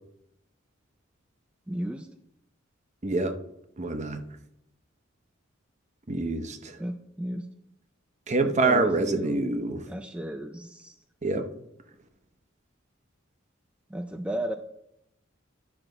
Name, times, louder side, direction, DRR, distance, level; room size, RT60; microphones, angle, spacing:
voice 1, 1.7-2.1 6.8-7.5 8.4-9.4 9.9-11.0 13.9-14.5, right 1 dB, 5° right, 6 dB, 0.4 m, -34 dB
voice 2, 3.0-3.4 3.8-4.2 6.1-6.8 8.3-9.9 11.2-11.5, right 3 dB, 35° right, 8 dB, 0.8 m, -26 dB
11.0 x 5.9 x 3.9 m, 0.79 s
head